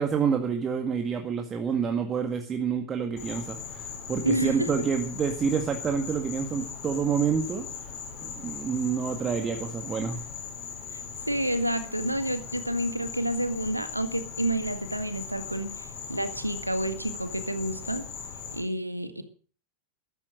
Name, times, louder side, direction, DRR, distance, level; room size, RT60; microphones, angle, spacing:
voice 1, 0.0-7.7 8.2-10.2, right 6 dB, 25° right, 4 dB, 1.9 m, -28 dB
Insect, 3.2-18.6, left 6 dB, 40° left, 6.1 m, -39 dB
voice 2, 4.2-4.9 10.9-18.1 18.5-19.2, right 1 dB, 85° right, 10 dB, 1.7 m, -29 dB
14.0 x 12.5 x 6.3 m, 0.41 s
figure-of-eight pair, 90°, 0 cm